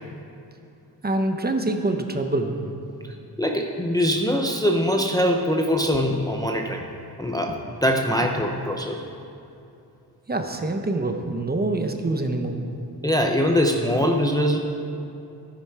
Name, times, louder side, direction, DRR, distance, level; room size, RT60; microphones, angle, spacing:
voice 1, 1.0-2.7 7.5-7.6 10.3-12.6, right 2 dB, 25° right, 5 dB, 0.9 m, -25 dB
voice 2, 3.4-6.9 7.2-9.0 13.0-14.6, equal, 10° left, 2 dB, 0.6 m, -22 dB
15.5 x 10.0 x 4.7 m, 2.7 s
wide cardioid pair, 150°, 40 cm